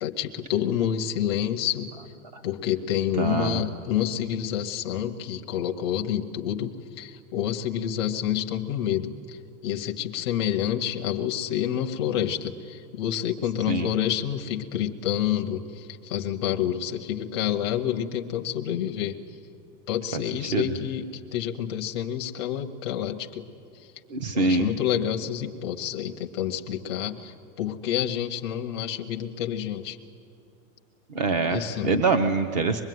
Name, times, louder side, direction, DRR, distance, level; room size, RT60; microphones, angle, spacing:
voice 1, 0.0-1.9 2.4-19.2 19.9-23.5 23.8-23.9 24.3-30.0 31.5-32.0, left 10 dB, 20° left, 3 dB, 0.6 m, -28 dB
voice 2, 3.2-3.6 13.7-13.9 20.4-20.7 24.1-24.7 31.1-32.8, right 3 dB, 30° right, 9 dB, 0.6 m, -24 dB
25.0 x 21.5 x 9.3 m, 2.5 s
supercardioid pair, 180°, 45 cm